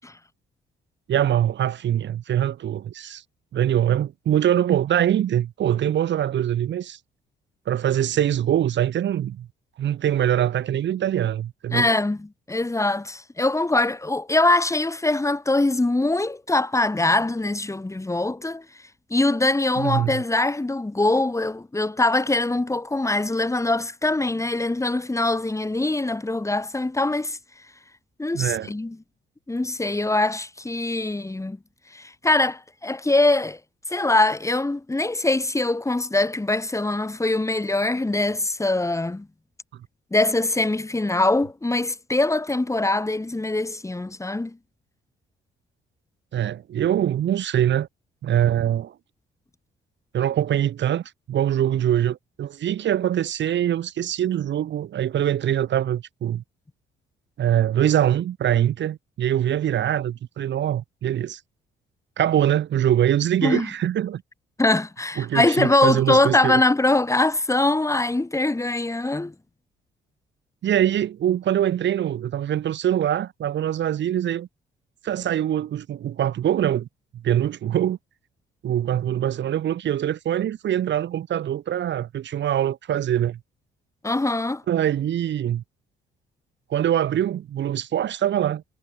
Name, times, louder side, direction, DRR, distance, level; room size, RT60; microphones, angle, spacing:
voice 1, 1.1-3.2 3.5-7.0 7.7-9.5 9.8-11.9 19.8-20.2 28.3-28.7 46.3-47.9 48.2-48.9 50.1-56.4 57.4-61.4 62.2-64.2 65.2-66.6 70.6-74.5 75.0-76.9 77.2-78.0 78.6-83.4 84.7-85.6 86.7-88.6, right 11 dB, 65° right, 1.9 m, -23 dB
voice 2, 11.7-18.7 19.1-27.4 28.2-29.0 29.5-31.6 31.9-33.6 33.9-39.3 40.1-44.6 63.4-63.7 64.6-69.3 84.0-84.6, left 2 dB, 15° left, 4.4 m, -23 dB
cardioid pair, 90°, 20 cm